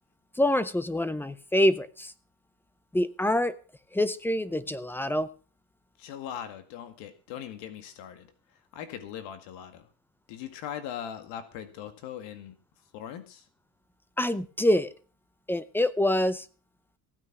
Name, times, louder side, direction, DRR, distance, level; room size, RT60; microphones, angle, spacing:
voice 1, 0.4-2.1 2.9-3.6 3.9-5.3 14.2-14.9 15.5-16.5, left 1 dB, 5° left, 16 dB, 0.6 m, -26 dB
voice 2, 6.0-8.3 8.7-9.9 10.3-12.6 12.9-13.4, left 9 dB, 75° left, 9 dB, 2.1 m, -40 dB
16.0 x 9.5 x 6.0 m, 0.38 s
cardioid pair, 145°, 44 cm